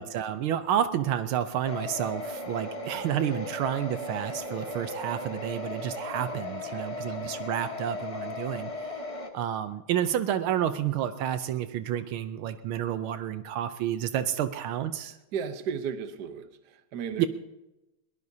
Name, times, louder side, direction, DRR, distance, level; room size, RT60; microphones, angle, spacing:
voice 1, 0.0-9.0 9.3-15.2 17.2-17.3, right 10 dB, 80° right, 10 dB, 1.5 m, -30 dB
sound 1, 1.6-9.3, left 2 dB, 20° left, 0.9 m, -37 dB
voice 2, 6.7-7.2 15.3-17.3, right 7 dB, 60° right, 8 dB, 1.4 m, -35 dB
21.5 x 18.5 x 2.8 m, 0.98 s
omnidirectional pair, 2.3 m